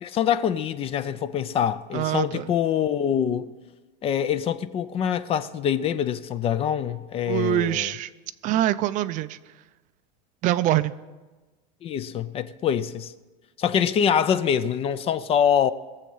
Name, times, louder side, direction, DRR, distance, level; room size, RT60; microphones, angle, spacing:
voice 1, 0.0-3.5 4.0-7.9 11.8-13.1 13.6-15.7, left 8 dB, 30° left, 0.5 m, -24 dB
voice 2, 1.9-2.5 7.3-8.1 8.4-9.4 10.4-10.9, right 13 dB, 40° right, 0.5 m, -24 dB
21.5 x 7.4 x 5.5 m
supercardioid pair, 140°, 21 cm